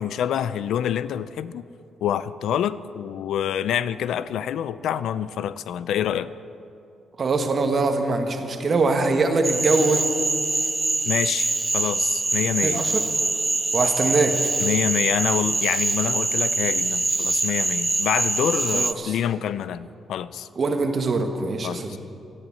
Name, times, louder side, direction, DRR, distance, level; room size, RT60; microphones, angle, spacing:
voice 1, 0.0-1.6 2.0-6.3 11.1-12.9 14.6-20.5 21.6-22.0, left 9 dB, 80° left, 15 dB, 0.4 m, -27 dB
voice 2, 7.2-10.0 12.6-12.9 13.7-14.3 18.7-19.1 20.6-22.0, right 3 dB, 40° right, 5 dB, 1.4 m, -23 dB
Cricket / Frog, 9.4-18.9, right 2 dB, 20° right, 0.4 m, -24 dB
12.5 x 10.5 x 7.7 m, 2.6 s
cardioid pair, 125°, 0 cm